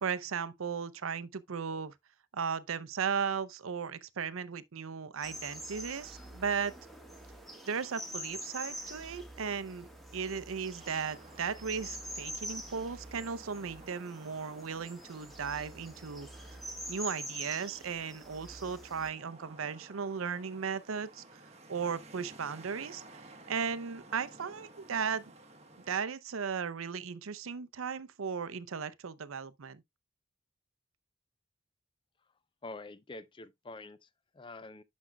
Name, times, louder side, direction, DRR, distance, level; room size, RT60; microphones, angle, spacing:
voice 1, 0.0-1.9 2.3-6.7 7.7-9.9 10.1-16.3 16.9-21.2 21.7-23.0 23.5-25.2 25.9-29.8, right 6 dB, 80° right, 0.6 m, -36 dB
sound 1, 5.2-19.1, equal, ahead, 1.4 m, -45 dB
sound 2, 10.8-26.0, right 2 dB, 30° right, 1.0 m, -55 dB
voice 2, 32.6-34.8, left 2 dB, 25° left, 0.4 m, -46 dB
10.0 x 6.3 x 2.2 m
head